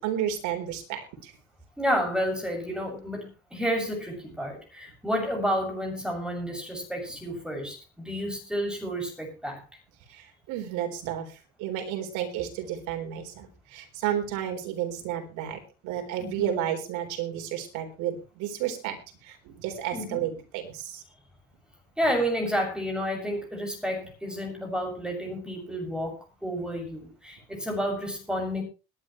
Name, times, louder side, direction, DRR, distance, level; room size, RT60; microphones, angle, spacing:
voice 1, 0.0-1.3 10.1-21.0, right 10 dB, 80° right, 5 dB, 4.0 m, -32 dB
voice 2, 1.8-9.6 16.2-16.5 19.9-20.3 22.0-28.6, equal, 5° right, 2 dB, 7.1 m, -30 dB
21.5 x 11.0 x 3.2 m, 0.30 s
supercardioid pair, 95°, 29 cm